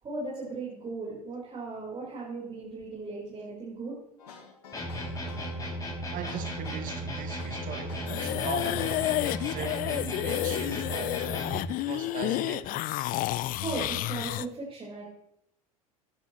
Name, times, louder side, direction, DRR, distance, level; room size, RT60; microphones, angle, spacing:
voice 1, 0.0-3.9 13.6-15.0, right 3 dB, 30° right, 4.5 m, -37 dB
sound 1, 4.2-10.3, left 4 dB, 80° left, 2.4 m, -49 dB
sound 2, 4.7-11.7, equal, 20° left, 4.5 m, -35 dB
voice 2, 6.1-9.0 9.4-11.3 11.7-12.8, right 11 dB, 45° right, 1.1 m, -40 dB
sound 3, 8.1-14.5, left 16 dB, 45° left, 0.5 m, -30 dB
15.0 x 10.5 x 3.1 m
hypercardioid pair, 80°, 20 cm